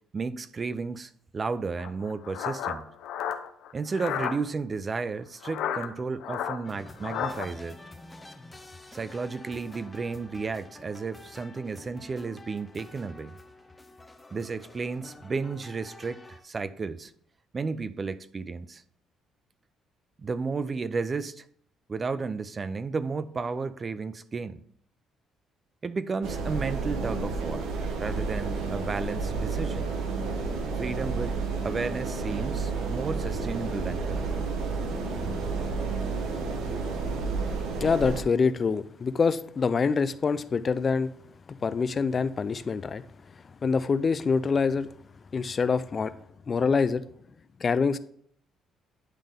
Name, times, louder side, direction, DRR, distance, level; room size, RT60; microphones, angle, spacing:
voice 1, 0.1-2.9 3.7-7.8 8.9-13.4 14.3-17.1 17.5-18.8 20.2-21.4 21.9-24.6 25.8-27.7 28.0-29.9 30.8-34.5, right 4 dB, 35° right, 0.4 m, -33 dB
sound 1, 1.8-4.4 5.4-7.5, left 9 dB, 80° left, 0.7 m, -32 dB
sound 2, 6.6-16.4, left 2 dB, 15° left, 0.7 m, -49 dB
sound 3, 26.2-38.2, right 4 dB, 80° right, 1.0 m, -31 dB
voice 2, 37.8-41.1 41.5-43.0 43.6-44.9 45.3-46.1 46.5-47.0 47.6-48.0, left 5 dB, 40° left, 0.4 m, -25 dB
10.0 x 3.6 x 3.5 m
cardioid pair, 95°, 0 cm